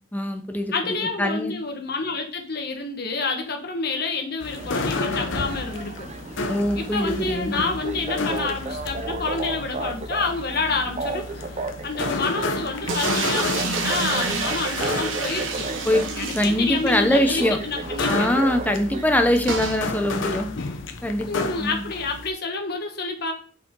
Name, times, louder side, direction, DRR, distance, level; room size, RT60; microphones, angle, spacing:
voice 1, 0.1-1.5 6.5-7.6 15.9-16.0 16.3-17.6 18.1-20.5 21.0-21.8, left 1 dB, 10° left, 6 dB, 0.8 m, -23 dB
voice 2, 0.7-6.1 6.8-11.3 11.8-15.7 16.1-18.3 21.3-23.3, left 4 dB, 55° left, 3 dB, 1.4 m, -28 dB
sound 1, 4.4-22.3, left 3 dB, 70° left, 0.8 m, -32 dB
sound 2, 4.6-19.1, right 3 dB, 35° right, 0.7 m, -34 dB
sound 3, 12.9-17.1 17.4-17.5 17.7-17.8 19.5-19.8, right 4 dB, 80° right, 1.2 m, -28 dB
6.9 x 5.3 x 3.8 m, 0.42 s
head